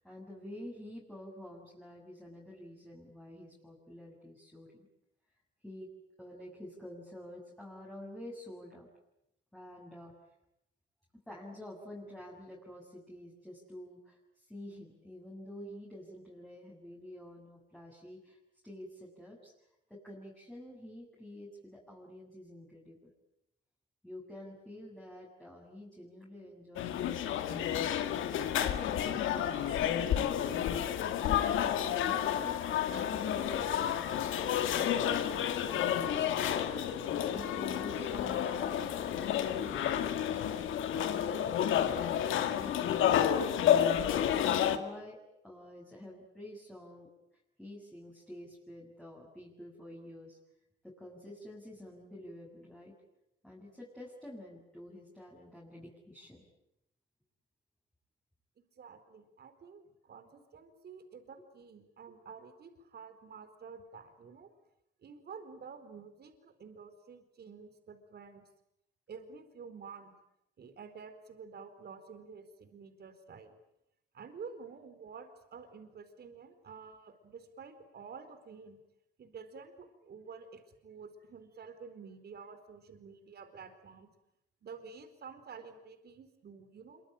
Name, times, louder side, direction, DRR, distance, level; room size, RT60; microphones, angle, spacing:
voice 1, 0.0-4.9 5.6-5.9 6.2-8.9 9.5-10.1 11.3-18.4 18.6-19.5 19.9-23.0 24.0-30.7 31.3-36.4 37.3-43.5 43.7-47.1 47.6-50.4 50.8-52.9 53.4-56.4, left 1 dB, 5° left, -4 dB, 7.5 m, -49 dB
sound 1, 26.8-44.8, left 10 dB, 80° left, 2.1 m, -30 dB
voice 2, 58.8-64.5 65.0-68.5 69.1-70.1 70.6-73.6 74.1-78.8 79.2-84.1 84.6-87.0, right 5 dB, 55° right, 9 dB, 4.4 m, -50 dB
26.5 x 24.5 x 9.2 m, 0.83 s
cardioid pair, 90°, 20 cm